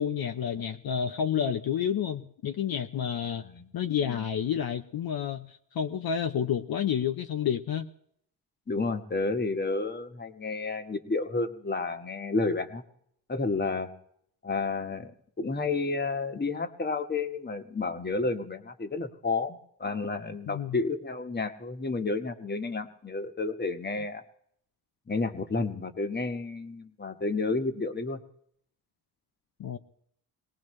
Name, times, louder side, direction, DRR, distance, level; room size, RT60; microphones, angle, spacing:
voice 1, 0.0-3.4 3.7-7.9 20.5-20.8 29.6-29.8, left 8 dB, 60° left, 5 dB, 0.8 m, -30 dB
voice 2, 8.7-12.8 13.3-13.9 14.4-15.1 15.4-24.2 25.1-28.2, left 3 dB, 25° left, 7 dB, 1.4 m, -31 dB
22.0 x 18.0 x 3.2 m, 0.68 s
cardioid pair, 70°, 41 cm